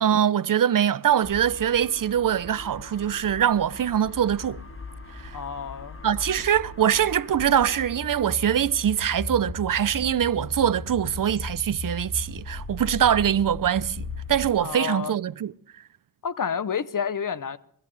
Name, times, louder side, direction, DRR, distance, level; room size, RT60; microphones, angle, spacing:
voice 1, 0.0-4.6 5.1-5.4 6.0-15.5, right 9 dB, 65° right, 0.5 m, -23 dB
sound 1, 1.2-14.5, left 2 dB, 35° left, 1.6 m, -38 dB
voice 2, 5.3-6.0 14.6-15.1 16.2-17.6, left 7 dB, 60° left, 0.7 m, -29 dB
23.0 x 16.0 x 3.3 m
wide cardioid pair, 80°, 35 cm